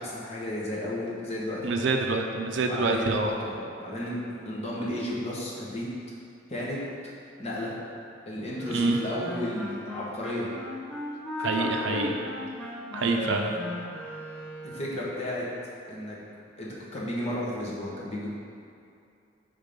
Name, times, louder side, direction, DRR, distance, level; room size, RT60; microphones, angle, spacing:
voice 1, 0.0-1.6 2.7-5.9 6.5-6.8 7.4-7.7 8.3-10.5 11.4-12.1 12.9-13.6 14.6-15.4 15.9-16.2 16.6-18.3, left 1 dB, 35° left, -6 dB, 1.1 m, -33 dB
voice 2, 1.6-3.3 8.7-9.0 11.4-12.1 12.9-13.5, right 3 dB, 65° right, 3 dB, 0.5 m, -26 dB
Wind instrument woodwind instrument, 8.6-14.9, left 1 dB, 5° left, 0.8 m, -37 dB
5.4 x 3.6 x 5.1 m, 2.6 s
head